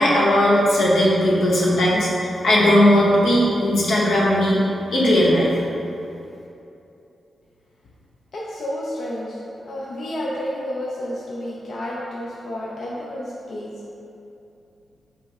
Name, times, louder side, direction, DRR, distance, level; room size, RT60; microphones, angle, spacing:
voice 1, 0.0-4.6 4.9-5.5, equal, 85° left, -6 dB, 0.9 m, -17 dB
voice 2, 8.3-13.8, left 1 dB, 55° left, -5 dB, 0.4 m, -30 dB
3.3 x 3.0 x 4.7 m, 2.8 s
wide cardioid pair, 155°, 0 cm